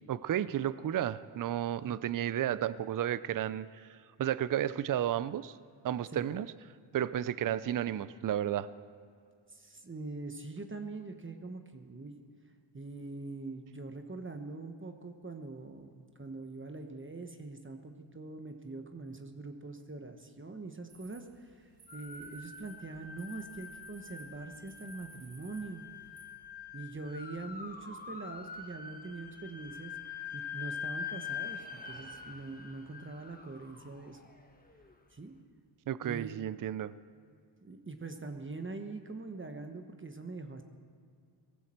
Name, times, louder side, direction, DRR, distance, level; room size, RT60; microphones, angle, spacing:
voice 1, 0.1-5.6 5.8-6.5 6.9-8.7 35.9-36.9, right 11 dB, 45° right, 17 dB, 0.5 m, -32 dB
voice 2, 9.5-12.1 12.7-25.8 26.7-29.9 30.3-34.2 35.1-35.3 36.0-36.4 37.6-40.6, right 3 dB, 25° right, 6 dB, 1.2 m, -43 dB
sound 1, 20.9-26.2, right 5 dB, 75° right, 3.2 m, -59 dB
sound 2, 21.9-34.9, left 6 dB, 20° left, 1.6 m, -44 dB
18.5 x 15.0 x 4.5 m, 2.2 s
cardioid pair, 75°, 48 cm